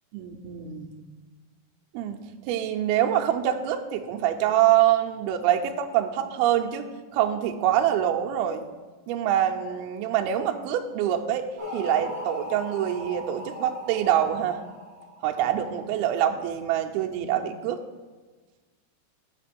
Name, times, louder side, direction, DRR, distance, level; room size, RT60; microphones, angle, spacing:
voice 1, 0.1-1.0 1.9-8.7 9.1-11.5 11.7-14.6 15.2-17.8, right 11 dB, 80° right, 3 dB, 2.4 m, -25 dB
sound 1, 11.6-15.8, left 1 dB, 15° right, 1.0 m, -39 dB
5.9 x 5.7 x 6.9 m, 1.3 s
omnidirectional pair, 4.7 m